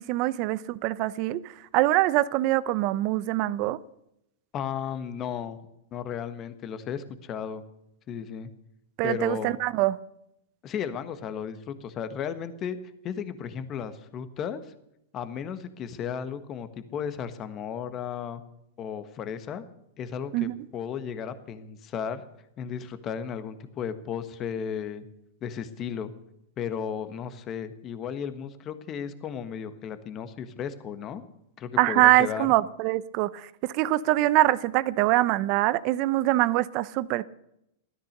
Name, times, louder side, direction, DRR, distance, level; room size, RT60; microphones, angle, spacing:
voice 1, 0.0-1.4 1.7-3.8 9.0-10.0 20.3-20.5 31.8-37.2, right 17 dB, 40° right, 0.7 m, -24 dB
voice 2, 4.5-5.6 5.9-7.6 8.1-8.5 9.0-9.6 10.6-12.8 13.0-14.7 15.1-18.4 18.8-19.6 20.0-22.2 22.6-25.0 25.4-26.1 26.6-31.2 31.6-32.5, left 7 dB, 25° left, 1.4 m, -34 dB
16.0 x 13.5 x 6.6 m
supercardioid pair, 155°, 0 cm